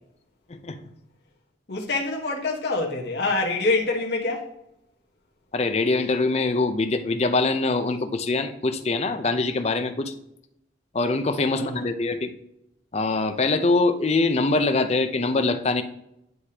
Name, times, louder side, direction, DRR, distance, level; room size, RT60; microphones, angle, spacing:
voice 1, 1.7-4.4 11.5-11.8, left 3 dB, 65° left, 1.0 m, -26 dB
voice 2, 5.5-10.1 10.9-12.3 12.9-15.8, left 3 dB, 35° left, 0.5 m, -23 dB
9.4 x 4.9 x 2.8 m
head